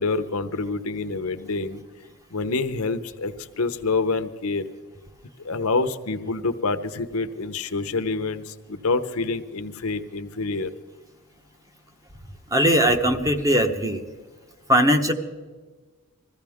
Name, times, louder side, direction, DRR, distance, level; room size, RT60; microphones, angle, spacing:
voice 1, 0.0-1.8 2.3-4.6 5.4-10.7, left 3 dB, 65° left, 9 dB, 0.9 m, -27 dB
voice 2, 12.5-14.0 14.7-15.1, equal, 15° right, 6 dB, 1.0 m, -19 dB
21.0 x 15.0 x 3.6 m, 1.3 s
head